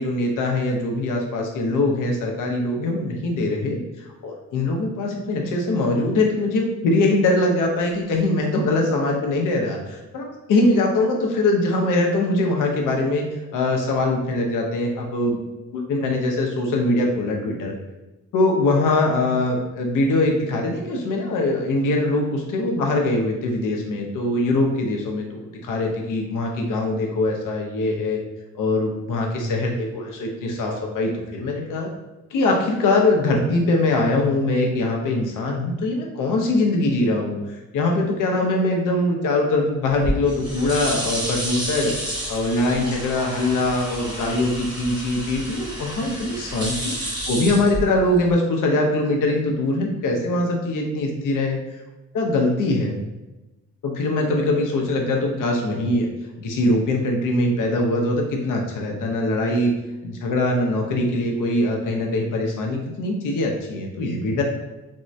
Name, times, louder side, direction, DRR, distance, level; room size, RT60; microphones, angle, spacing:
voice 1, 0.0-13.2 13.5-15.4 15.7-17.7 18.3-28.2 28.5-31.9 32.3-41.9 42.3-51.6 52.1-52.9 53.8-56.1 56.4-59.7 60.0-64.4, left 2 dB, 85° left, 0 dB, 0.7 m, -22 dB
sound 1, 39.9-48.3, equal, 15° right, 0.9 m, -30 dB
3.5 x 2.1 x 2.6 m, 1.0 s
wide cardioid pair, 165°, 31 cm